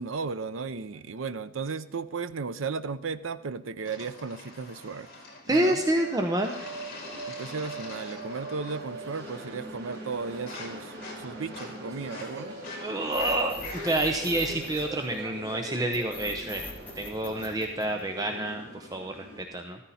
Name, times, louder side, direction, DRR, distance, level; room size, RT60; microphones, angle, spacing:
voice 1, 0.0-5.1 5.5-5.8 7.3-12.6 14.5-14.6, right 4 dB, 90° right, 13 dB, 0.6 m, -35 dB
sound 1, 3.8-5.9 6.4-8.9 9.1-9.6 9.9-14.2, left 3 dB, 50° left, 5.0 m, -45 dB
voice 2, 5.5-6.5 12.8-16.6 17.0-19.8, right 1 dB, 20° right, 4 dB, 0.8 m, -28 dB
sound 2, 5.5-19.4, right 2 dB, 55° right, 3.7 m, -42 dB
sound 3, 13.1-15.4 15.9-18.4, left 2 dB, 10° left, 2.7 m, -42 dB
14.0 x 14.0 x 4.2 m, 0.98 s
head